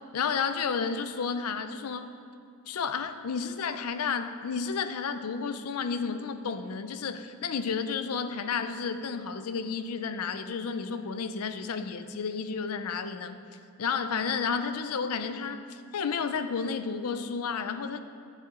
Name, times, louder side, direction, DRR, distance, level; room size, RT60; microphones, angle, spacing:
voice 1, 0.1-2.1 2.7-13.4 13.8-18.0, left 5 dB, 85° left, 10 dB, 0.5 m, -31 dB
12.0 x 6.8 x 3.8 m, 2.4 s
head